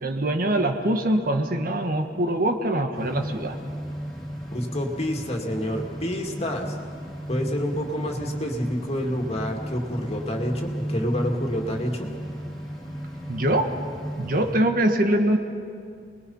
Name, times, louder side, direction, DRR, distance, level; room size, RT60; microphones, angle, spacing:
voice 1, 0.0-3.6 13.3-13.7 14.2-15.4, right 1 dB, 50° right, 5 dB, 1.5 m, -23 dB
sound 1, 2.9-14.6, equal, 5° left, 2.7 m, -34 dB
voice 2, 4.5-6.8 7.3-12.1, equal, 35° left, 1 dB, 2.3 m, -28 dB
30.0 x 21.0 x 5.6 m, 2.3 s
head